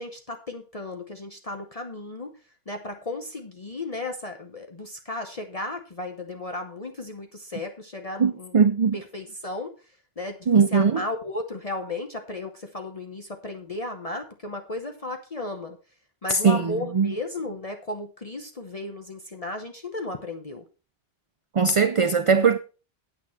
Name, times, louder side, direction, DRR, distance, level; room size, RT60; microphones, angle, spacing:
voice 1, 0.0-2.3 2.7-8.6 8.9-15.8 16.2-20.6, left 2 dB, 35° left, 1.0 m, -35 dB
voice 2, 8.2-9.0 10.5-11.0 16.3-17.1 21.5-22.6, right 5 dB, 40° right, 0.5 m, -20 dB
9.1 x 8.9 x 4.4 m
omnidirectional pair, 1.1 m